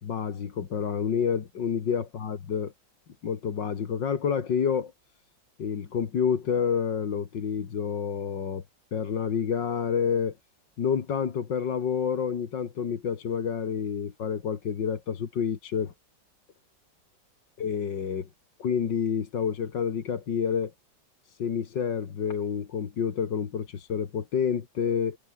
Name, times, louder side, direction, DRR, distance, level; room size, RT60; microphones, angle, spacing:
voice 1, 0.0-2.7 3.2-4.9 5.6-8.6 8.9-10.4 10.8-15.9 17.6-18.3 18.6-20.7 21.3-25.2, left 7 dB, 75° left, 2.5 m, -28 dB
omnidirectional pair, 2.0 m